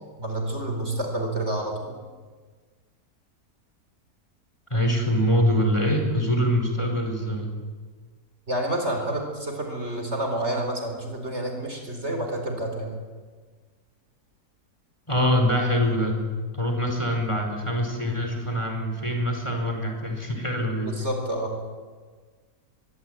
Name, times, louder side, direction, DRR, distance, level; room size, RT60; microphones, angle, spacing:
voice 1, 0.2-2.0 8.5-13.0 20.8-21.6, right 1 dB, 45° right, 3 dB, 4.7 m, -29 dB
voice 2, 4.7-7.5 15.1-16.1 16.5-20.9, equal, 20° left, 3 dB, 4.6 m, -24 dB
23.0 x 23.0 x 9.1 m, 1.5 s
omnidirectional pair, 1.7 m